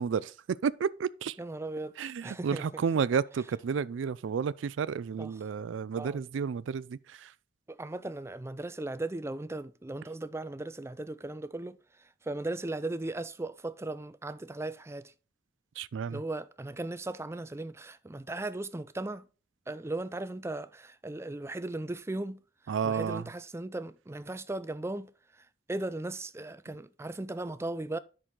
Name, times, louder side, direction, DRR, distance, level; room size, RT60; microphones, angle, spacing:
voice 1, 0.0-1.4 2.0-7.3 15.8-16.2 22.7-23.2, right 6 dB, 90° right, 0.4 m, -31 dB
voice 2, 1.4-2.8 5.2-5.4 5.9-6.3 7.7-11.8 12.2-15.1 16.1-19.3 19.7-22.4 22.8-25.1 25.4-28.0, right 2 dB, 15° right, 0.5 m, -37 dB
10.0 x 6.2 x 3.8 m
head